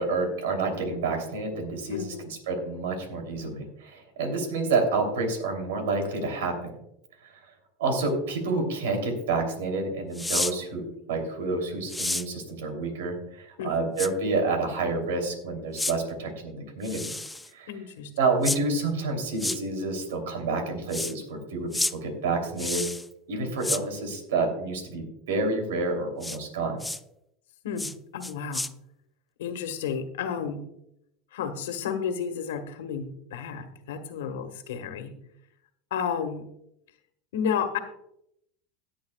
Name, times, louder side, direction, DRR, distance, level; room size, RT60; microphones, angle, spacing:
voice 1, 0.0-6.7 7.2-7.3 7.8-17.1 17.5-17.7 18.2-22.8 23.3-26.8, right 3 dB, 85° right, 4 dB, 3.0 m, -29 dB
voice 2, 1.9-2.3 13.6-13.9 17.7-18.1 23.4-23.8 27.6-28.6 29.4-30.6 31.3-35.1 35.9-36.4 37.3-37.8, left 7 dB, 85° left, 8 dB, 1.5 m, -32 dB
sound 1, 10.1-10.5 11.9-12.3 14.0-14.1 15.8-15.9 16.8-17.5 18.4-18.6 19.4-19.6 20.9-21.1 21.7-21.9 22.6-23.1 23.6-23.8 26.2-26.4 26.8-27.0 27.8-27.9 28.2-28.7, left 2 dB, 5° left, 0.4 m, -30 dB
17.5 x 8.6 x 2.3 m, 0.77 s
supercardioid pair, 115°, 0 cm